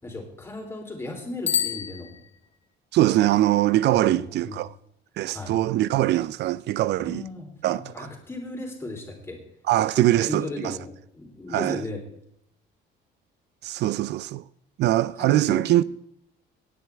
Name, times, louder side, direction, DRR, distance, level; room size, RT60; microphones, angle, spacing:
voice 1, 0.0-2.1 3.9-4.6 5.3-5.6 7.0-9.4 9.9-12.0 15.2-15.8, left 2 dB, 15° left, 3.4 m, -36 dB
Bicycle bell, 1.4-2.7, left 8 dB, 35° left, 1.5 m, -29 dB
voice 2, 2.9-4.7 5.2-7.2 7.6-8.1 9.7-10.8 11.5-11.8 13.6-14.4 14.8-15.8, right 15 dB, 65° right, 0.4 m, -22 dB
17.5 x 9.8 x 3.5 m
cardioid pair, 130°, 19 cm